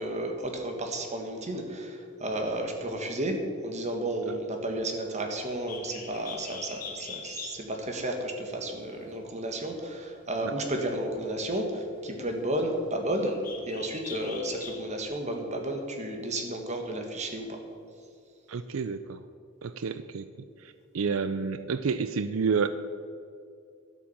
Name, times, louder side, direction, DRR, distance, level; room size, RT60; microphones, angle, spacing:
voice 1, 0.0-17.6, right 1 dB, 35° right, 3 dB, 1.8 m, -32 dB
Bird, 5.5-15.0, left 5 dB, 45° left, 1.6 m, -45 dB
voice 2, 18.5-19.2 19.6-20.3 20.6-22.7, right 5 dB, 80° right, 12 dB, 0.5 m, -30 dB
12.0 x 8.5 x 7.3 m, 2.4 s
head